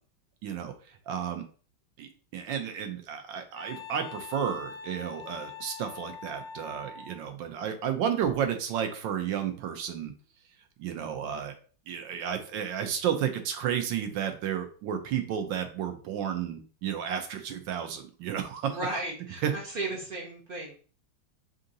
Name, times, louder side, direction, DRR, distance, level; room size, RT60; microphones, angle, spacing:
voice 1, 0.4-0.7 1.1-1.4 2.0-10.1 10.8-11.5 11.9-18.8 19.4-19.5, right 8 dB, 75° right, 7 dB, 1.3 m, -32 dB
Wind instrument woodwind instrument, 3.6-7.2, left 5 dB, 65° left, 1.3 m, -43 dB
voice 2, 18.6-20.8, right 2 dB, 60° right, -2 dB, 0.5 m, -35 dB
3.7 x 2.7 x 3.9 m, 0.40 s
omnidirectional pair, 2.2 m